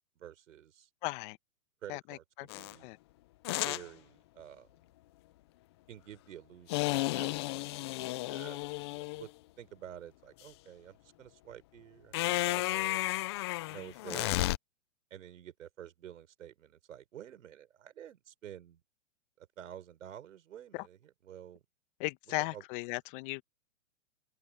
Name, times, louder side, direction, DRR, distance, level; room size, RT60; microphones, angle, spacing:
voice 1, 0.2-0.9 1.8-2.9 3.6-4.7 5.9-9.3 9.6-13.0 13.7-14.4 15.1-18.8 19.4-21.6 22.4-22.6, right 10 dB, 75° right, 6.4 m, -50 dB
voice 2, 1.0-1.4 1.9-2.5 2.8-3.0 20.7-20.8 22.0-23.4, left 25 dB, 40° left, 1.5 m, -37 dB
sound 1, 2.5-2.7 3.4-3.8 6.7-9.3 12.1-14.6, left 18 dB, 20° left, 0.3 m, -33 dB
hypercardioid pair, 135°, 40 cm